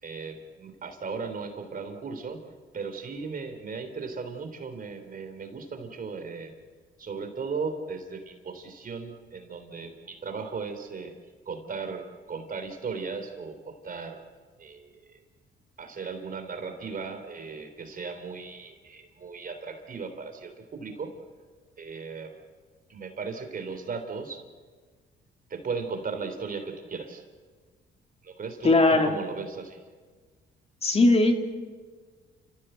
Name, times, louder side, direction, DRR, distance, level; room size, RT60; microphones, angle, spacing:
voice 1, 0.0-2.4 2.7-6.5 7.0-11.1 11.4-14.2 14.6-15.2 15.8-21.1 21.8-22.4 22.9-24.4 25.5-27.2 28.2-29.8, right 4 dB, 45° right, 8 dB, 3.4 m, -37 dB
voice 2, 28.6-29.1 30.8-31.3, left 2 dB, 30° left, 4 dB, 2.6 m, -19 dB
29.0 x 16.0 x 7.9 m, 1.5 s
cardioid pair, 90°, 20 cm